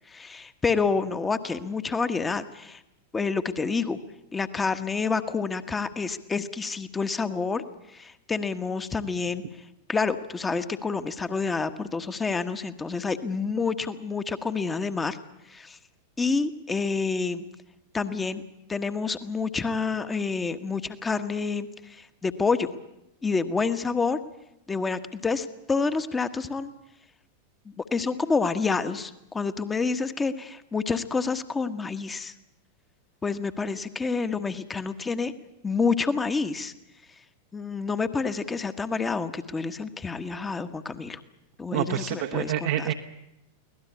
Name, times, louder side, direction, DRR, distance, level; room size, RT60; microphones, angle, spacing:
voice 1, 0.1-2.8 3.1-4.0 4.3-7.6 7.9-9.4 9.9-15.2 15.5-15.8 16.2-17.4 17.9-18.4 18.7-22.7 23.2-24.2 24.7-26.7 27.6-32.3 33.2-35.3 35.6-36.7 37.5-41.2 41.6-42.9, left 4 dB, 15° left, 10 dB, 1.3 m, -28 dB
voice 2, 41.7-42.9, right 11 dB, 55° right, 2 dB, 1.1 m, -27 dB
23.5 x 18.0 x 8.5 m, 0.87 s
figure-of-eight pair, 90°, 0 cm